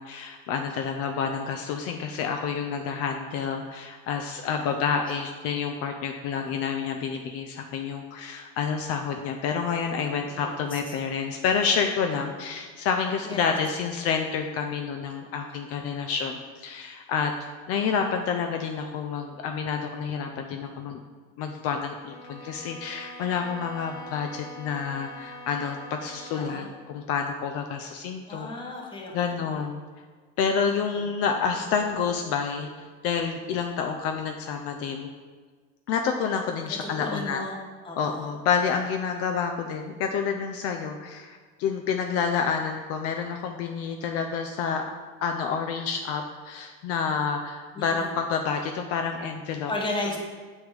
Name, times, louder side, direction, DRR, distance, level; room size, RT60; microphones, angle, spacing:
voice 1, 0.0-17.3 17.7-21.0 21.4-28.5 29.1-29.8 30.4-32.7 33.0-35.1 35.9-37.4 38.0-44.9 45.2-49.7, left 6 dB, 55° left, 4 dB, 0.5 m, -29 dB
voice 2, 10.3-11.0 13.2-13.5 26.3-26.7 28.3-29.6 36.7-37.6 37.8-38.3 47.7-48.1 49.7-50.2, left 2 dB, 15° left, -1 dB, 1.0 m, -35 dB
sound 1, 22.0-26.7, equal, 75° left, 1.3 m, -44 dB
7.1 x 3.2 x 4.8 m, 1.5 s
cardioid pair, 145°, 30 cm